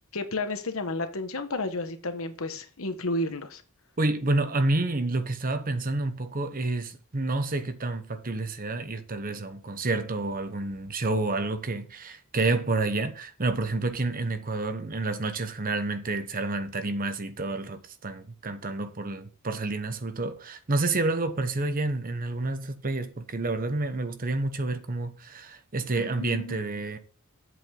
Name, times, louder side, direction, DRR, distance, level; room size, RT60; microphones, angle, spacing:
voice 1, 0.1-3.6 26.0-26.6, left 2 dB, 65° left, 1.2 m, -32 dB
voice 2, 4.0-27.0, right 2 dB, 40° right, 1.0 m, -29 dB
8.4 x 7.9 x 3.8 m
head